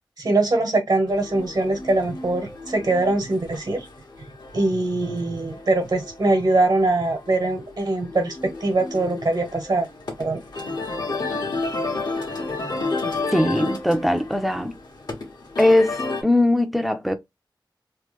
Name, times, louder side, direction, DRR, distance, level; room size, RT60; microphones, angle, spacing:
voice 1, 0.2-3.9 4.5-9.9 10.2-10.4, right 2 dB, 60° right, 1.3 m, -22 dB
sound 1, 1.1-16.2, left 3 dB, 60° left, 1.4 m, -32 dB
voice 2, 13.3-14.7 15.6-17.1, left 1 dB, ahead, 0.7 m, -20 dB
3.2 x 2.3 x 3.4 m
wide cardioid pair, 75°, 8 cm